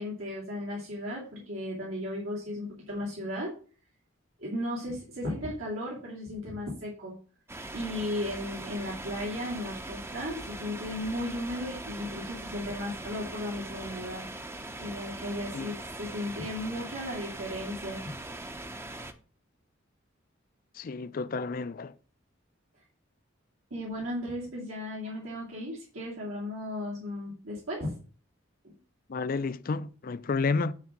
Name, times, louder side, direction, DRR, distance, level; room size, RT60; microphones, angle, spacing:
voice 1, 0.0-3.6 4.4-7.1 7.7-18.0 23.7-27.9 28.6-28.7, left 1 dB, 90° right, 2.5 m, -35 dB
sound 1, 7.5-19.1, right 2 dB, 10° right, 0.6 m, -41 dB
voice 2, 20.7-21.9 29.1-30.7, left 4 dB, 45° left, 0.4 m, -31 dB
9.7 x 3.6 x 6.0 m
head